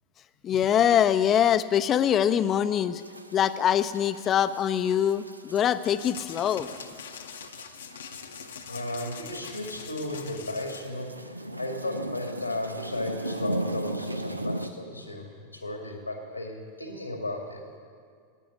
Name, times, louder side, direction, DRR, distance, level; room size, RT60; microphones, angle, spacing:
voice 1, 0.4-3.0 3.3-6.7, left 9 dB, 30° left, 13 dB, 0.6 m, -23 dB
sound 1, 3.0-14.7, right 1 dB, 85° right, 0.6 m, -38 dB
sound 2, 5.8-10.8, left 7 dB, 65° left, 1.0 m, -43 dB
voice 2, 8.7-17.6, left 1 dB, 85° left, 3 dB, 2.2 m, -35 dB
15.5 x 9.5 x 9.7 m, 2.1 s
figure-of-eight pair, 90°, 0 cm